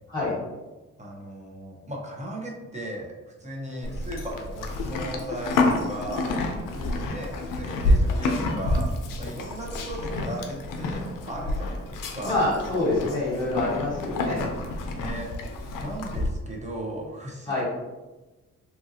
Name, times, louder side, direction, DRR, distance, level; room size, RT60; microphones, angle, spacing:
voice 1, 1.0-3.1 3.4-6.4 7.1-8.9 9.2-12.4 14.9-15.3 15.8-17.6, right 1 dB, 20° right, -1 dB, 0.7 m, -37 dB
Livestock farm animals working animals, 3.8-16.3, left 2 dB, 90° left, 0.5 m, -28 dB
voice 2, 12.2-14.5 17.5-17.6, left 2 dB, 15° left, -9 dB, 1.2 m, -27 dB
2.9 x 2.4 x 2.6 m, 1.2 s
cardioid pair, 70°, 31 cm